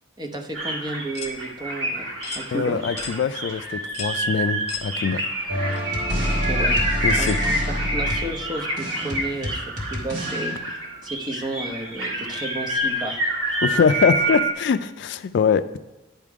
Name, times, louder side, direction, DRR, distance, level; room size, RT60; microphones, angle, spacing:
voice 1, 0.2-2.8 6.5-7.5 7.9-10.5 11.0-13.2, right 1 dB, 20° right, 3 dB, 0.8 m, -32 dB
sound 1, 0.5-14.5, right 1 dB, 75° right, 1.9 m, -27 dB
sound 2, 1.1-1.4 2.2-2.5 3.0-3.2 3.9-4.2 4.7-4.9 5.7-5.8 7.2-7.4, left 6 dB, 35° left, 0.9 m, -34 dB
voice 2, 2.5-5.2 7.0-7.4 13.6-15.8, left 6 dB, 60° left, 12 dB, 0.3 m, -23 dB
sound 3, 5.5-10.6, equal, 40° right, 1.9 m, -27 dB
10.5 x 3.7 x 4.7 m, 1.1 s
head